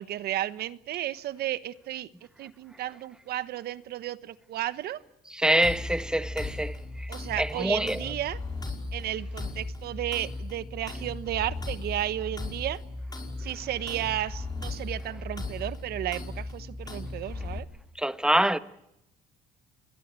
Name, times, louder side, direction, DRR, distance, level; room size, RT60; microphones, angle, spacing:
voice 1, 0.0-2.1 2.4-5.0 7.1-8.4 8.9-12.8 13.4-17.7, right 13 dB, 70° right, 1.2 m, -33 dB
voice 2, 5.4-7.1 7.4-8.0 18.0-18.6, right 1 dB, 5° right, 1.2 m, -25 dB
sound 1, 5.6-17.6, left 2 dB, 25° left, 5.6 m, -37 dB
27.5 x 22.0 x 8.4 m
cardioid pair, 110°, 17 cm